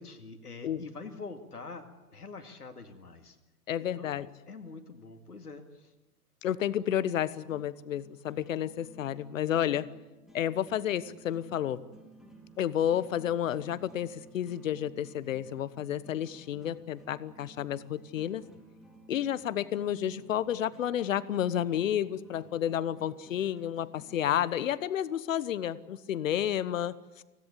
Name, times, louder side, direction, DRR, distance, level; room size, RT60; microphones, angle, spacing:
voice 1, 0.0-3.4 4.0-4.1 4.5-5.9, left 4 dB, 85° left, 5 dB, 2.2 m, -45 dB
voice 2, 3.7-4.3 6.4-9.9 10.3-11.8 12.6-18.4 19.1-27.2, left 10 dB, 60° left, 17 dB, 1.2 m, -31 dB
sound 1, 7.4-24.4, right 1 dB, ahead, 4.2 m, -55 dB
25.0 x 17.5 x 8.5 m, 1.1 s
figure-of-eight pair, 110°, 45 cm